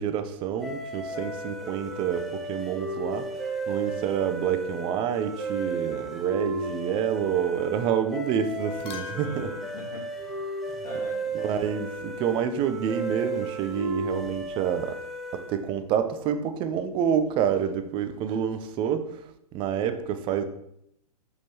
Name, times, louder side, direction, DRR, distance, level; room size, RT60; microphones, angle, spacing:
voice 1, 0.0-3.3 3.7-9.5 11.3-14.9 15.3-19.1 19.5-20.4, right 8 dB, 25° right, 10 dB, 0.6 m, -28 dB
sound 1, 0.6-15.7, right 2 dB, ahead, 1.0 m, -34 dB
sound 2, 8.0-8.3 8.6-11.1 13.6-14.5, left 5 dB, 30° left, 1.0 m, -45 dB
voice 2, 9.1-11.3, left 2 dB, 65° left, -2 dB, 2.0 m, -42 dB
6.3 x 5.5 x 3.1 m, 0.76 s
figure-of-eight pair, 115°, 20 cm